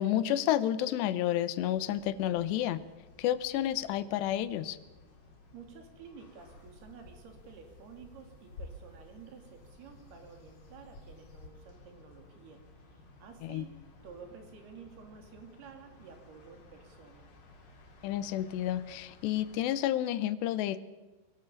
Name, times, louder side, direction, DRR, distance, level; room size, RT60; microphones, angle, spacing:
voice 1, 0.0-2.8 3.2-4.8 13.4-13.7 18.0-20.8, left 12 dB, 85° left, 15 dB, 3.0 m, -30 dB
sound 1, 1.7-19.6, left 2 dB, 65° left, 5.5 m, -58 dB
voice 2, 5.5-12.6 12.9-13.7 14.0-17.3, right 6 dB, 70° right, 4 dB, 4.5 m, -51 dB
sound 2, 6.4-11.5, left 2 dB, 35° left, 3.0 m, -53 dB
22.5 x 17.5 x 7.1 m, 1.2 s
omnidirectional pair, 4.9 m